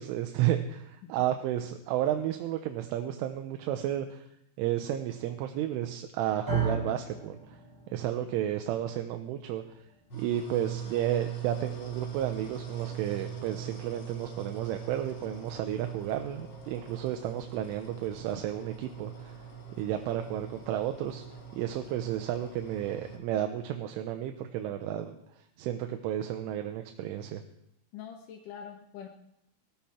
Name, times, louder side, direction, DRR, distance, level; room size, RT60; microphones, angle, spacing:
voice 1, 0.0-4.2 4.6-7.4 7.9-9.6 10.1-19.3 19.8-21.2 21.5-25.2 25.6-27.4, right 11 dB, 85° right, 6 dB, 3.3 m, -32 dB
sound 1, 6.5-14.7, right 4 dB, 5° right, 4.0 m, -39 dB
sound 2, 10.1-23.2, right 8 dB, 55° left, 1.2 m, -42 dB
voice 2, 27.9-29.1, left 8 dB, 70° left, 1 dB, 2.0 m, -44 dB
18.5 x 14.5 x 4.4 m, 0.79 s
omnidirectional pair, 5.6 m